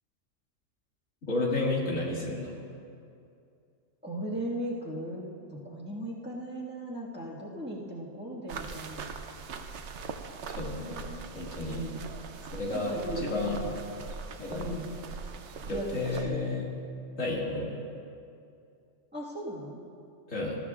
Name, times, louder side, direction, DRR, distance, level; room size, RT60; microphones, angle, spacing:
voice 1, 1.3-2.6 10.5-11.8 12.5-13.6 14.4-14.7 15.7-16.7 17.2-17.8 20.3-20.6, left 2 dB, 80° left, -3 dB, 2.4 m, -32 dB
voice 2, 4.0-5.3 5.6-9.1 11.6-12.0 12.7-13.8 14.5-14.9 15.7-16.6 19.1-19.8, right 1 dB, 10° right, -6 dB, 1.6 m, -37 dB
sound 1, 8.5-16.2, right 5 dB, 65° right, 1.0 m, -41 dB
20.0 x 13.5 x 2.4 m, 2.5 s
omnidirectional pair, 1.3 m